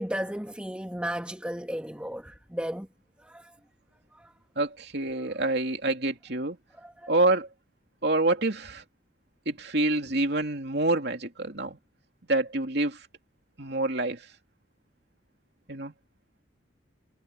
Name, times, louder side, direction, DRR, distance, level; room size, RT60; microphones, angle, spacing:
voice 1, 0.0-2.9 3.2-3.5 4.2-4.3 5.2-5.3 6.8-7.1, equal, 5° right, 1.8 m, -34 dB
voice 2, 4.6-6.6 7.1-7.5 8.0-8.8 9.5-11.8 12.3-13.1 13.6-14.3 15.7-15.9, right 2 dB, 60° right, 2.9 m, -27 dB
head